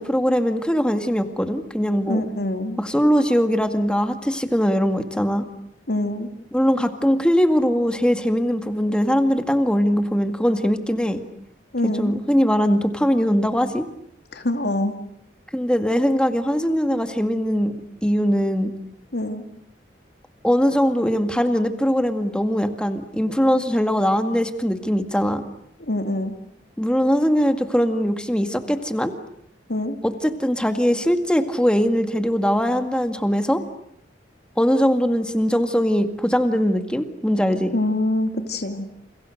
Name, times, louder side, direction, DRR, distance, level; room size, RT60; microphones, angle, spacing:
voice 1, 0.0-2.2 2.8-5.5 6.5-11.2 11.8-13.9 15.5-17.7 18.0-18.7 20.4-25.4 26.8-29.1 30.0-33.6 34.6-37.7, equal, 5° left, 7 dB, 2.0 m, -21 dB
voice 2, 2.1-2.8 5.9-6.3 11.7-12.2 14.3-14.9 19.1-19.4 25.8-26.3 29.7-30.0 37.7-38.9, left 1 dB, 60° left, 5 dB, 2.4 m, -24 dB
29.5 x 29.5 x 6.6 m, 0.73 s
head